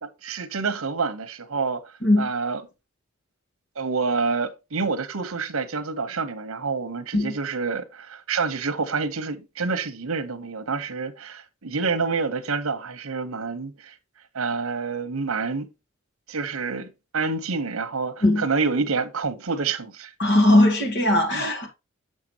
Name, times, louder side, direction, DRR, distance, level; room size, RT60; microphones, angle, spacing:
voice 1, 0.0-1.8 2.2-2.6 3.8-13.9 14.3-15.7 16.3-16.9 17.1-20.1 21.3-21.4, right 4 dB, 75° right, 1.0 m, -28 dB
voice 2, 20.2-21.7, left 1 dB, 55° left, 2.1 m, -19 dB
6.8 x 6.5 x 2.9 m
head